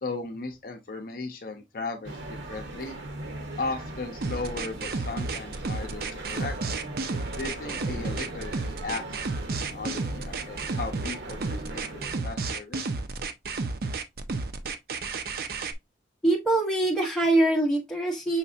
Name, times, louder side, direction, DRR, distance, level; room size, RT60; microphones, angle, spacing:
voice 1, 0.0-2.9 3.6-6.5 7.4-9.0 9.7-12.9, left 3 dB, 55° left, 0.7 m, -36 dB
sound 1, 2.0-12.2, right 2 dB, 90° right, 1.0 m, -39 dB
sound 2, 4.2-15.7, right 3 dB, 55° right, 0.5 m, -32 dB
voice 2, 16.2-18.4, right 2 dB, 5° left, 1.3 m, -23 dB
5.7 x 3.3 x 2.6 m
head